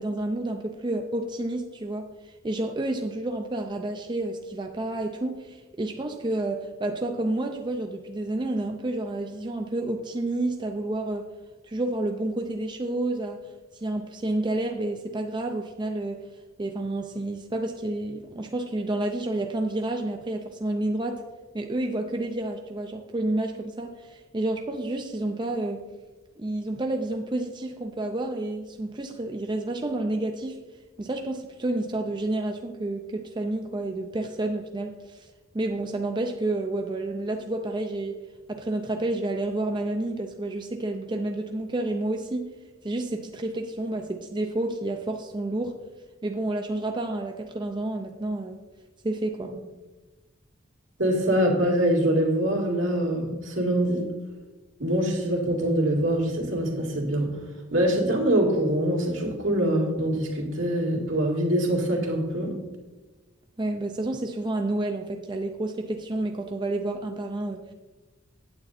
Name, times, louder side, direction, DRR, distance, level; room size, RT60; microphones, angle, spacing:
voice 1, 0.0-11.3 11.6-13.4 13.7-16.2 16.6-21.2 21.5-25.8 26.4-30.6 31.0-38.2 38.5-42.5 42.8-45.8 46.2-48.6 49.0-49.5 63.6-67.7, right 2 dB, 25° right, 4 dB, 0.5 m, -30 dB
voice 2, 51.0-54.0 54.8-57.3 57.7-62.5, right 1 dB, 70° right, -1 dB, 2.2 m, -24 dB
8.9 x 7.8 x 4.1 m, 1.2 s
head